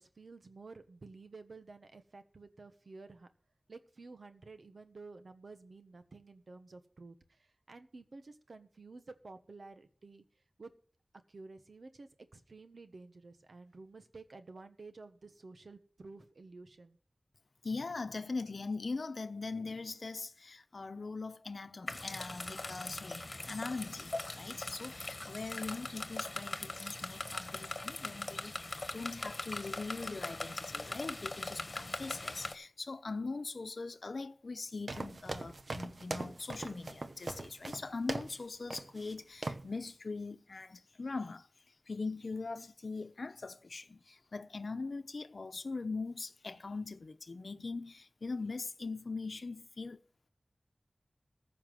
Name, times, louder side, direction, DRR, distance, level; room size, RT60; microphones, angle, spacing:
voice 1, 0.0-3.3 3.7-10.2 10.6-10.7 11.3-17.0, right 3 dB, 80° right, 1.3 m, -52 dB
voice 2, 17.6-41.5 41.9-50.0, left 3 dB, 75° left, 0.9 m, -41 dB
sound 1, 21.9-32.5, left 2 dB, 45° left, 1.4 m, -41 dB
sound 2, 34.9-38.4 38.7-39.1 39.4-39.7, right 2 dB, 65° right, 1.0 m, -41 dB
15.0 x 5.8 x 7.7 m
wide cardioid pair, 55°, 0 cm